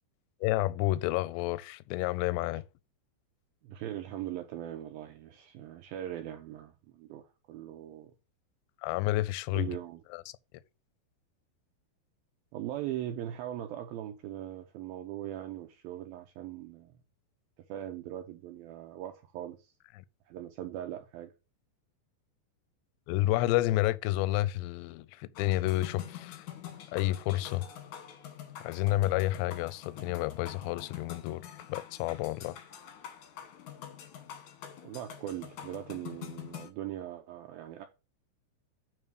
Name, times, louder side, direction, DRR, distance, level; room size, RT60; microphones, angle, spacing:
voice 1, 0.4-2.6 8.8-9.8 10.1-10.2 20.0-20.1 23.1-26.5 26.9-27.7 28.6-32.6, left 16 dB, 85° left, 2.6 m, -30 dB
voice 2, 3.6-8.1 9.5-10.0 12.5-17.0 17.7-19.7 20.3-21.3 34.8-37.9, right 12 dB, 85° right, 2.0 m, -40 dB
sound 1, 25.3-36.7, left 10 dB, 65° left, 1.9 m, -46 dB
8.9 x 3.7 x 6.2 m
omnidirectional pair, 5.1 m